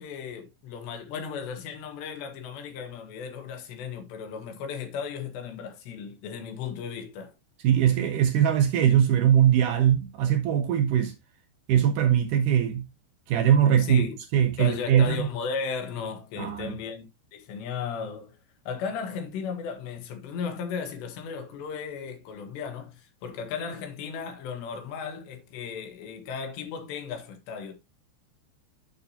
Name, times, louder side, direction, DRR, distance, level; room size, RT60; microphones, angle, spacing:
voice 1, 0.0-7.3 13.8-14.2 14.6-18.4 18.7-27.7, left 6 dB, 80° left, 3.7 m, -35 dB
voice 2, 7.6-11.1 11.7-12.9 13.3-14.0 14.3-15.3 16.4-16.8, right 9 dB, 75° right, 1.9 m, -21 dB
8.8 x 7.0 x 2.9 m
omnidirectional pair, 4.9 m